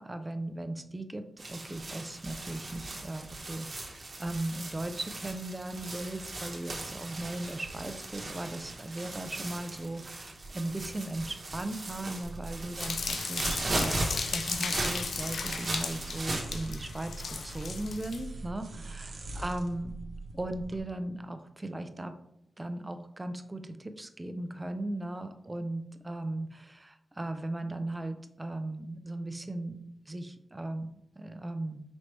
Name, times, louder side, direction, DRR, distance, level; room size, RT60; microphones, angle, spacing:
voice 1, 0.0-19.9 20.3-22.1 22.6-29.8 30.1-31.8, right 1 dB, 25° right, 8 dB, 0.5 m, -37 dB
sound 1, 1.4-16.4, right 2 dB, 50° right, 1.0 m, -38 dB
sound 2, 12.2-20.8, right 2 dB, 70° right, 0.8 m, -43 dB
sound 3, 12.8-18.2, left 5 dB, 75° left, 0.4 m, -36 dB
5.1 x 3.0 x 3.2 m, 0.79 s
cardioid pair, 60°, 0 cm